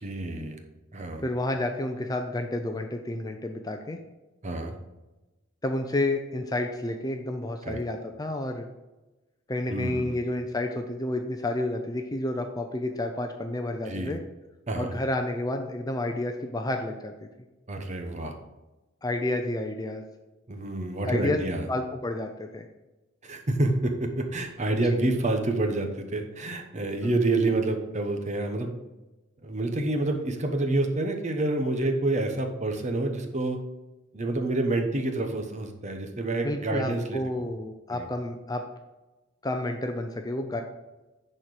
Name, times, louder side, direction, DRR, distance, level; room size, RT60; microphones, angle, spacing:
voice 1, 0.0-0.6 0.9-1.2 4.4-4.8 7.6-7.8 9.7-10.2 13.8-14.2 14.7-15.0 17.7-18.3 20.5-21.6 23.2-28.7 29.4-33.6 34.1-37.2 37.9-38.1, right 2 dB, 35° right, 5 dB, 0.9 m, -28 dB
voice 2, 1.2-4.0 5.6-8.7 9.5-14.2 14.7-17.1 19.0-20.0 21.1-22.7 24.9-25.0 36.4-38.6 39.4-40.6, left 1 dB, 20° left, 4 dB, 0.5 m, -30 dB
10.5 x 4.4 x 4.8 m, 1.1 s
head